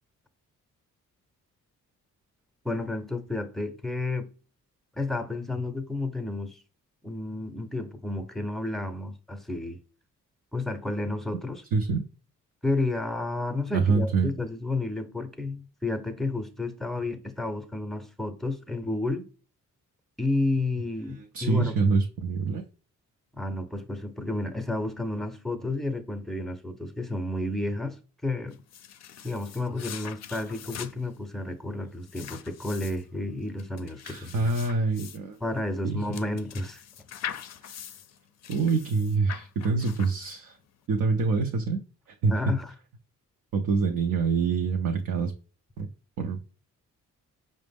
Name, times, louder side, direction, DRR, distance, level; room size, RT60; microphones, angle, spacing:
voice 1, 2.6-4.3 5.0-6.6 7.0-9.8 10.5-11.6 12.6-19.2 20.2-21.7 23.3-28.6 29.2-34.5 35.4-36.8 42.3-42.7, left 2 dB, ahead, 0.6 m, -31 dB
voice 2, 11.7-12.0 13.7-14.3 21.3-22.6 34.0-35.4 35.8-36.0 37.6-37.8 38.5-40.6 40.9-41.8 42.2-42.3 43.5-45.3 45.8-45.9 46.2-46.5, right 4 dB, 70° right, 0.6 m, -25 dB
sound 1, 28.5-40.6, left 9 dB, 55° left, 0.4 m, -43 dB
5.0 x 2.1 x 3.4 m
cardioid pair, 70°, 33 cm